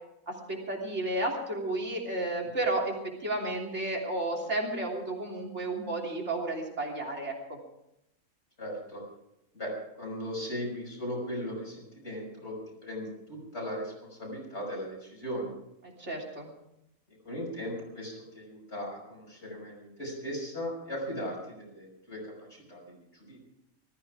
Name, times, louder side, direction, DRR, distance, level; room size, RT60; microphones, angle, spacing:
voice 1, 0.3-2.9 3.2-7.6 16.0-16.5, right 2 dB, 50° right, 0 dB, 3.6 m, -32 dB
voice 2, 8.6-9.0 9.5-9.7 10.0-12.6 12.8-15.5 17.2-23.4, equal, 50° left, -3 dB, 6.2 m, -38 dB
19.5 x 14.0 x 4.8 m, 0.84 s
omnidirectional pair, 1.5 m